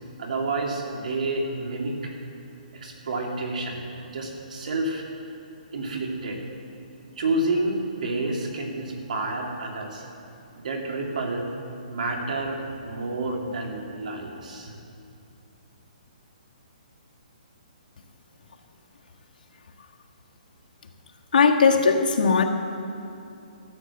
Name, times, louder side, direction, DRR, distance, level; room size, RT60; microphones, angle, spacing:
voice 1, 0.2-2.1 2.7-5.0 5.7-6.4 7.2-10.1 10.5-11.5 11.9-14.7, right 2 dB, 60° right, 1 dB, 2.5 m, -29 dB
voice 2, 21.3-22.4, left 5 dB, 70° left, 1 dB, 1.6 m, -18 dB
14.0 x 9.0 x 7.1 m, 2.7 s
hypercardioid pair, 170°, 5 cm